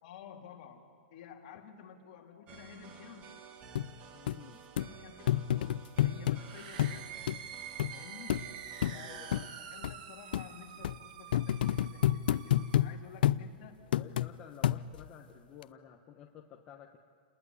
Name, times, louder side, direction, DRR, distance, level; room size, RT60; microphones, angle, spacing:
voice 1, 0.0-3.3 4.8-7.1 7.9-8.4 8.9-13.9, left 7 dB, 45° left, 1 dB, 3.5 m, -52 dB
sound 1, 2.5-9.5, right 6 dB, 25° right, 1.5 m, -52 dB
sound 2, 3.8-3.9 4.3-4.4 4.8-4.9 5.3-6.4 6.8-7.0 7.3-7.4 7.8-7.9 8.3-8.4 8.8-9.0 9.3-9.4 9.8-9.9 10.3-10.5 10.8-11.0 11.3-12.9 13.2-13.4 13.9-14.3 14.6-15.1 15.6-15.7, left 12 dB, 65° left, 0.6 m, -28 dB
voice 2, 4.1-4.7 8.9-9.5 13.9-17.0, left 9 dB, 20° left, 2 dB, 1.1 m, -52 dB
sound 3, 6.4-13.0, right 8 dB, 50° right, 2.0 m, -47 dB
29.5 x 20.0 x 9.9 m, 2.2 s
supercardioid pair, 170°, 5 cm